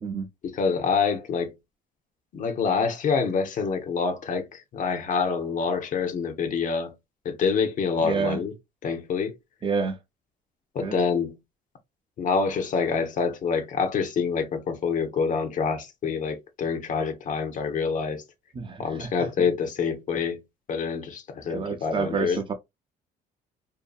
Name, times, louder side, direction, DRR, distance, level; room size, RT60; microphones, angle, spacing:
voice 1, 0.4-1.5 2.3-6.9 7.2-8.5 8.8-9.3 10.7-11.4 12.2-18.2 18.8-20.4 20.7-22.4, left 5 dB, 50° left, 0.7 m, -26 dB
voice 2, 8.0-8.4 9.6-10.0 10.8-11.0 18.5-19.3 21.4-22.5, right 5 dB, 30° right, 0.5 m, -29 dB
2.6 x 2.5 x 2.3 m
cardioid pair, 110°, 17 cm